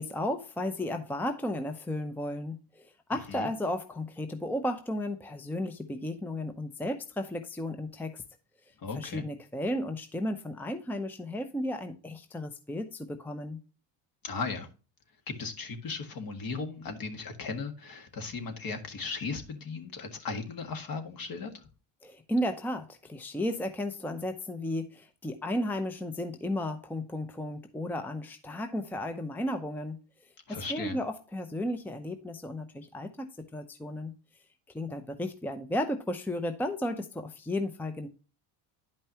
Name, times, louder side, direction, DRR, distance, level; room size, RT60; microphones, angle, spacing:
voice 1, 0.0-8.2 8.9-13.6 22.0-30.0 30.5-34.1 34.7-38.1, left 1 dB, 5° left, 0.7 m, -34 dB
voice 2, 3.1-3.5 8.8-9.2 14.2-14.7 15.3-21.7 30.5-31.0, left 4 dB, 45° left, 1.8 m, -37 dB
10.5 x 5.4 x 2.8 m
supercardioid pair, 95°, 48 cm